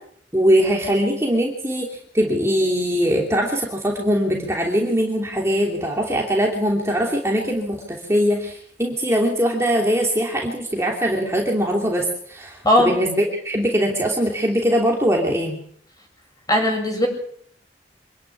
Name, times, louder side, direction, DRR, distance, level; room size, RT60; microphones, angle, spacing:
voice 1, 0.3-15.6, equal, 15° right, -1 dB, 2.9 m, -21 dB
voice 2, 16.5-17.1, left 1 dB, 20° left, 3 dB, 7.9 m, -17 dB
25.5 x 11.0 x 9.9 m, 0.65 s
head